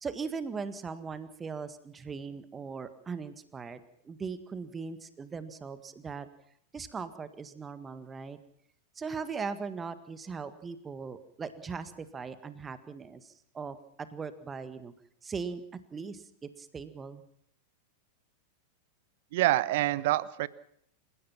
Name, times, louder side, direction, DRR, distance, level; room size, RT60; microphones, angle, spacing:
voice 1, 0.0-6.3 6.7-8.4 9.0-14.9 15.2-17.2, right 5 dB, 20° right, 12 dB, 1.8 m, -39 dB
voice 2, 19.3-20.5, right 16 dB, 50° right, 20 dB, 1.0 m, -26 dB
28.5 x 16.5 x 5.9 m, 0.67 s
figure-of-eight pair, 90°, 0 cm